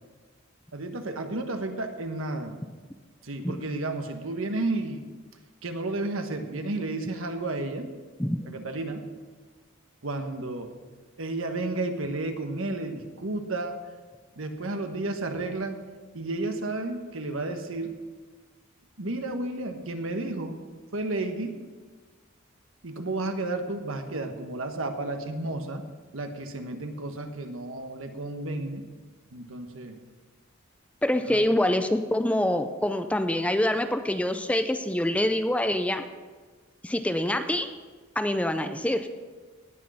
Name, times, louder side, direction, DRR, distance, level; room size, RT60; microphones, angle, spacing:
voice 1, 0.7-2.6 3.2-5.0 5.6-7.9 8.5-9.1 10.0-10.7 11.2-13.8 14.4-15.8 16.1-17.9 19.0-20.6 20.9-21.5 22.8-25.8 26.1-28.8 29.3-30.0 31.3-31.4, right 2 dB, 75° right, 6 dB, 1.3 m, -32 dB
voice 2, 31.0-36.0 36.8-37.7 38.2-39.1, left 1 dB, 5° left, 8 dB, 0.5 m, -25 dB
18.0 x 6.4 x 5.6 m, 1.4 s
head